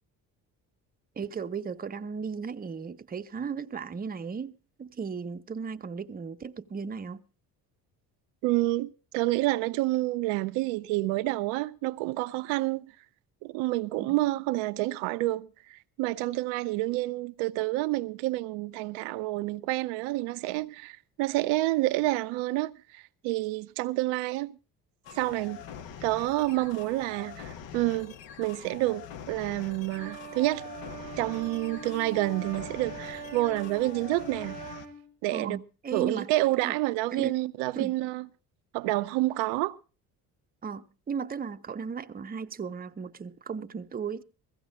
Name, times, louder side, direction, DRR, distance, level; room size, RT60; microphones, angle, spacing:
voice 1, 1.2-4.5 4.8-7.2 14.0-14.2 35.3-36.3 36.6-36.8 37.1-37.4 37.7-37.9 40.6-44.2, right 6 dB, 20° right, 0.7 m, -36 dB
voice 2, 8.4-12.9 13.4-24.5 25.1-25.6 26.0-30.6 31.2-34.6 35.2-35.6 35.9-38.2 38.7-39.8, right 18 dB, 70° right, 0.6 m, -29 dB
sound 1, 25.0-34.9, left 8 dB, 65° left, 1.3 m, -45 dB
Wind instrument woodwind instrument, 29.9-35.1, right 3 dB, 85° right, 1.1 m, -42 dB
16.0 x 15.0 x 3.6 m
hypercardioid pair, 50°, 48 cm